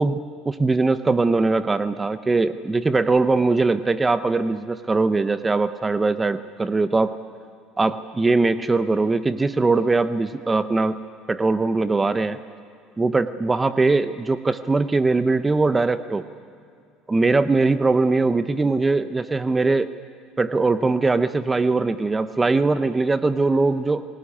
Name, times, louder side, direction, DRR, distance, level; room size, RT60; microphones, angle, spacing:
voice 1, 0.0-7.1 7.8-11.0 11.3-12.4 13.0-16.2 17.1-19.9 20.4-24.1, right 3 dB, 15° right, 12 dB, 0.7 m, -21 dB
24.5 x 18.5 x 10.0 m, 2.3 s
cardioid pair, 120°, 0 cm